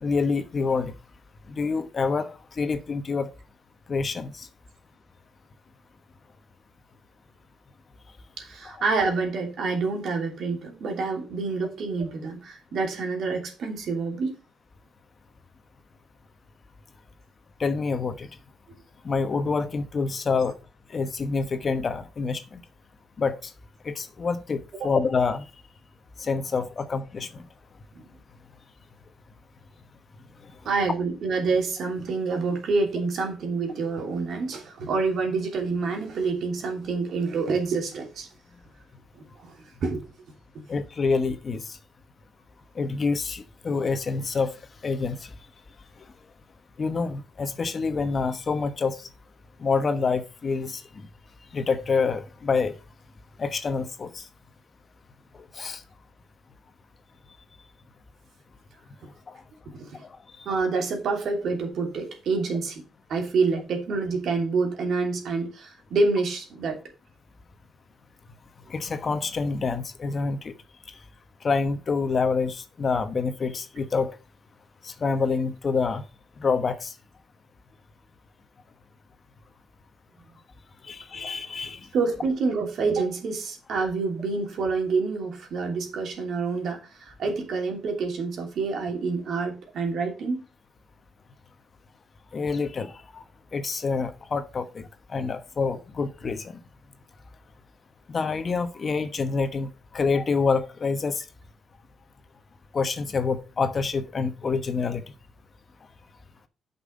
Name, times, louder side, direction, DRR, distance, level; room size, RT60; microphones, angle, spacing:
voice 1, 0.0-0.9 1.5-3.3 3.9-4.5 8.6-8.8 17.6-18.3 19.0-20.6 20.9-22.6 23.2-23.5 23.8-25.4 26.2-27.5 40.7-41.6 42.7-44.5 44.8-45.3 46.8-49.1 49.6-50.8 51.5-52.7 53.4-54.2 55.3-55.8 68.7-70.5 71.4-74.2 74.8-76.0 76.4-76.9 80.8-81.8 92.3-93.2 93.5-96.6 98.1-101.2 102.7-105.0, left 4 dB, 40° left, 1.1 m, -27 dB
voice 2, 8.4-14.4 24.8-24.9 27.9-28.1 30.6-38.3 39.2-40.0 59.7-60.0 60.4-62.8 63.1-66.8 81.9-90.4, right 4 dB, 65° right, 2.8 m, -27 dB
8.2 x 5.6 x 5.2 m
cardioid pair, 90°, 0 cm